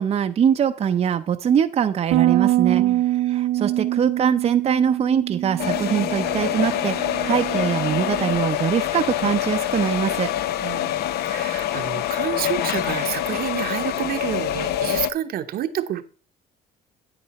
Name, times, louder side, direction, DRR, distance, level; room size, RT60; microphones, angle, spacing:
voice 1, 0.0-2.8 3.3-10.3, right 8 dB, 40° right, 7 dB, 0.5 m, -22 dB
Bass guitar, 2.1-8.4, right 14 dB, 90° right, 0.5 m, -24 dB
sound 1, 5.6-15.1, left 12 dB, 70° left, 0.6 m, -25 dB
voice 2, 10.6-16.0, right 11 dB, 65° right, 10 dB, 0.9 m, -29 dB
8.8 x 8.8 x 4.1 m, 0.37 s
cardioid pair, 110°, 17 cm